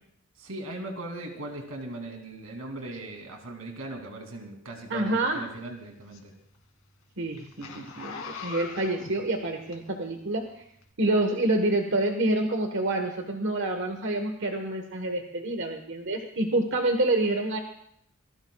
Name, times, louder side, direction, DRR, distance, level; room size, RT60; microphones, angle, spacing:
voice 1, 0.3-6.3, right 2 dB, 90° right, 2 dB, 2.8 m, -39 dB
voice 2, 4.9-5.4 7.2-10.6 11.0-17.6, right 2 dB, 60° right, 4 dB, 1.4 m, -27 dB
Zipper (clothing), 5.3-10.2 10.8-10.9, left 5 dB, 85° left, 2.5 m, -42 dB
27.0 x 19.5 x 2.4 m, 0.71 s
head